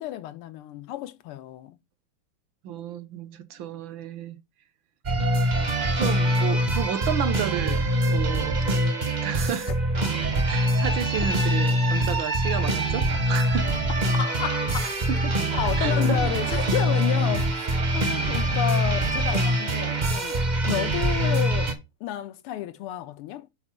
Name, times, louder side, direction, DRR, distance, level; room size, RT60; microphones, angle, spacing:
voice 1, 0.0-1.8 14.2-14.9 15.5-17.6 17.9-23.5, left 12 dB, 90° left, 1.7 m, -31 dB
voice 2, 2.6-4.4 5.9-7.8 8.1-8.6 9.2-9.7 10.5-13.8 15.1-15.3 15.8-16.3, right 9 dB, 70° right, 1.4 m, -31 dB
sound 1, 5.0-21.7, right 1 dB, 35° right, 0.7 m, -24 dB
5.5 x 4.3 x 6.1 m
omnidirectional pair, 2.4 m